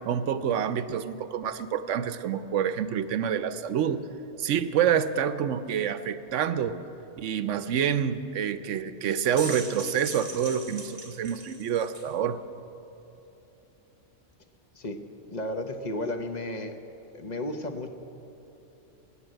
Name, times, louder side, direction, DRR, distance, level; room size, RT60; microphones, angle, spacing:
voice 1, 0.0-4.0 4.4-6.8 7.2-12.4, right 8 dB, 80° right, 12 dB, 1.0 m, -27 dB
sound 1, 9.1-12.1, right 2 dB, 25° right, 1.7 m, -40 dB
voice 2, 15.3-16.8 17.1-17.9, left 1 dB, 40° left, 6 dB, 0.9 m, -33 dB
14.5 x 9.6 x 8.9 m, 3.0 s
omnidirectional pair, 1.3 m